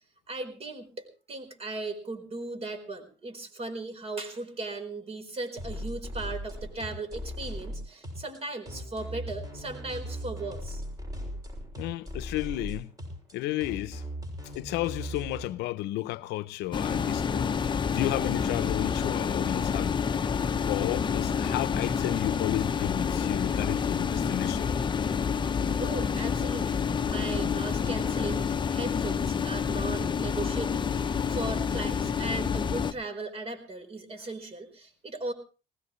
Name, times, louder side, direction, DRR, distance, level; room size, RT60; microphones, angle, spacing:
voice 1, 0.3-10.8 21.5-21.7 25.8-35.3, right 2 dB, 35° right, 4.4 m, -37 dB
sound 1, 5.6-15.5, equal, 20° right, 6.5 m, -38 dB
voice 2, 11.8-12.9 13.3-14.0 14.6-17.5 17.9-20.0 20.6-24.7, left 16 dB, 90° left, 0.7 m, -32 dB
sound 2, 16.7-32.9, left 6 dB, 30° left, 0.8 m, -28 dB
20.0 x 19.5 x 3.2 m
cardioid pair, 110°, 17 cm